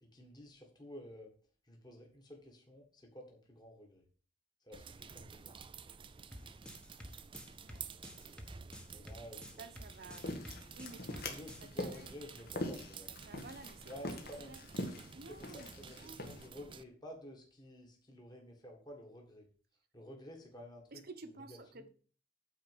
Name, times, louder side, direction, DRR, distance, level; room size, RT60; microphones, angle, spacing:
voice 1, 0.0-1.3 1.6-4.0 4.6-5.7 8.9-10.5 11.0-13.1 13.8-14.6 15.3-19.5 19.9-21.8, left 1 dB, 20° left, 1 dB, 1.8 m, -52 dB
sound 1, 4.7-16.8, right 6 dB, 25° right, 0.4 m, -52 dB
sound 2, 6.3-11.7, equal, 5° left, 1.1 m, -51 dB
voice 2, 9.6-10.2 10.8-11.4 11.8-12.1 13.2-13.9 14.5-14.6 15.1-16.2 20.9-21.9, right 3 dB, 50° right, 9 dB, 1.1 m, -52 dB
sound 3, 9.9-16.5, left 1 dB, 50° left, 1.6 m, -44 dB
9.2 x 4.3 x 7.4 m, 0.41 s
head